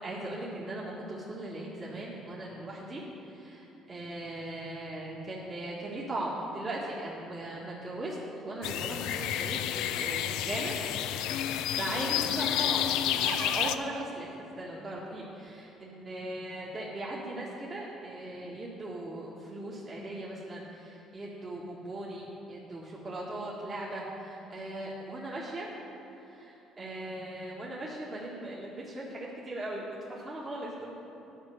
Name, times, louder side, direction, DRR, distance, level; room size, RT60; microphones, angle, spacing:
voice 1, 0.0-8.2 8.4-10.7 11.8-12.9 13.4-25.7 26.3-30.9, right 1 dB, 35° right, -6 dB, 1.8 m, -39 dB
sound 1, 8.6-13.8, left 11 dB, 80° left, 0.4 m, -30 dB
sound 2, 13.2-14.1 15.0-15.1 15.5-15.6, right 8 dB, 55° right, 0.4 m, -39 dB
10.0 x 5.5 x 7.8 m, 2.9 s
supercardioid pair, 85°, 0 cm